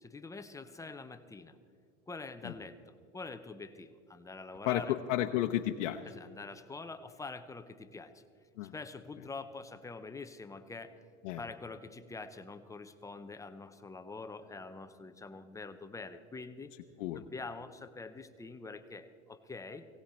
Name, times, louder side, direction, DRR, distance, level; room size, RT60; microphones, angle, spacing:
voice 1, 0.0-1.6 2.1-4.9 6.1-8.2 8.7-11.0 11.4-16.7 17.1-19.9, left 3 dB, 10° left, 9 dB, 0.5 m, -45 dB
voice 2, 4.6-6.0 8.6-8.7 11.2-11.4 17.0-17.2, left 13 dB, 85° left, 4 dB, 0.8 m, -32 dB
18.0 x 17.0 x 4.3 m, 2.3 s
supercardioid pair, 135°, 36 cm